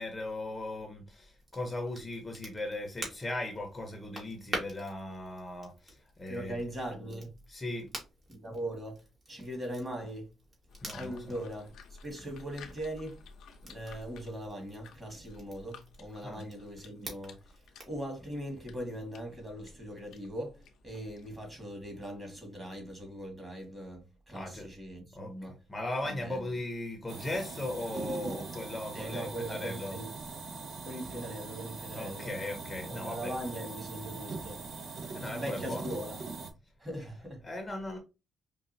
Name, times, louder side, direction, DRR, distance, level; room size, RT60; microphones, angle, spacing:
voice 1, 0.0-6.5 7.5-7.9 10.8-11.2 16.2-16.4 24.3-24.7 25.2-25.3 25.7-30.0 31.9-33.3 35.1-35.8 37.4-38.0, left 1 dB, 20° left, 1.0 m, -38 dB
Crackle, 1.4-18.0, right 1 dB, 35° right, 1.9 m, -47 dB
voice 2, 6.3-7.4 8.3-10.3 10.9-13.2 13.6-25.6 26.0-26.6 28.9-30.1 30.8-32.3 32.9-34.7 35.2-36.2 36.8-37.5, right 1 dB, 20° right, 2.0 m, -40 dB
sound 1, 10.7-21.5, left 4 dB, 75° left, 0.7 m, -54 dB
sound 2, 27.1-36.5, right 4 dB, 55° right, 0.9 m, -42 dB
5.1 x 2.4 x 2.8 m
cardioid pair, 90°, 0 cm